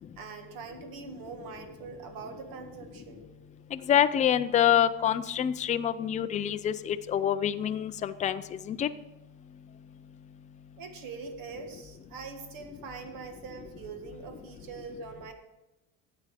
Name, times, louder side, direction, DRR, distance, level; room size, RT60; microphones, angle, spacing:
voice 1, 0.2-3.4 10.8-15.3, right 4 dB, 60° right, 6 dB, 1.8 m, -43 dB
voice 2, 3.7-8.4 8.7-8.9, left 10 dB, 20° left, 10 dB, 0.3 m, -26 dB
12.5 x 8.8 x 4.9 m, 0.98 s
cardioid pair, 145°, 39 cm